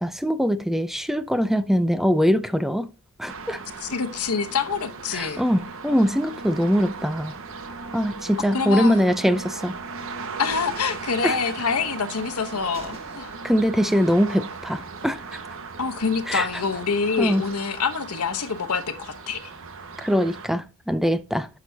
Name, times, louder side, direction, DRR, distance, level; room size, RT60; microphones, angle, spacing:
voice 1, 0.0-2.9 3.2-3.6 5.1-7.3 7.9-9.8 11.2-11.4 13.4-15.4 16.3-16.5 17.2-17.4 20.0-21.5, equal, ahead, 0.4 m, -22 dB
sound 1, 3.3-20.5, right 4 dB, 65° right, 1.0 m, -37 dB
voice 2, 3.8-5.5 8.5-9.0 10.4-13.3 15.8-19.5, left 5 dB, 75° left, 1.0 m, -26 dB
sound 2, 9.7-10.0 10.4-11.7 12.0-12.1 12.4-12.5 12.7-13.6 14.0-14.1, right 2 dB, 25° right, 1.6 m, -47 dB
10.0 x 6.2 x 2.7 m
head